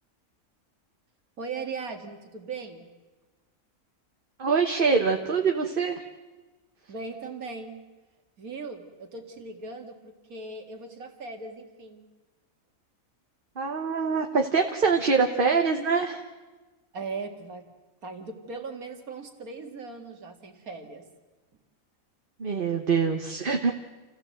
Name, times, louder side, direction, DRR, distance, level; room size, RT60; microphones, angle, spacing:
voice 1, 1.4-2.9 6.9-7.8 8.4-12.0 16.9-17.7 18.0-21.0, right 4 dB, 85° right, 5 dB, 2.5 m, -38 dB
voice 2, 4.4-6.0 13.6-16.2 22.4-23.7, right 5 dB, 40° right, 4 dB, 1.3 m, -24 dB
28.0 x 15.5 x 7.8 m, 1.2 s
omnidirectional pair, 1.5 m